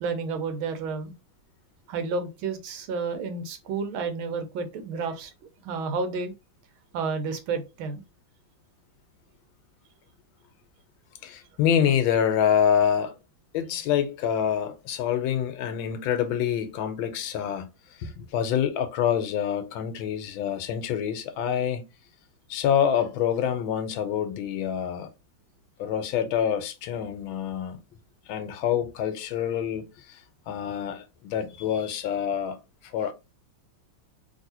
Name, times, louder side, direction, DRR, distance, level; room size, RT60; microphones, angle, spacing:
voice 1, 0.0-1.1 1.9-5.3 5.6-6.3 6.9-8.0, right 4 dB, 90° right, 1.6 m, -31 dB
voice 2, 11.2-13.2 13.5-17.7 18.0-21.8 22.5-25.1 25.8-27.8 28.3-30.2 30.5-32.6 32.8-33.1, left 9 dB, 80° left, 1.4 m, -26 dB
3.5 x 2.6 x 2.8 m
omnidirectional pair, 2.2 m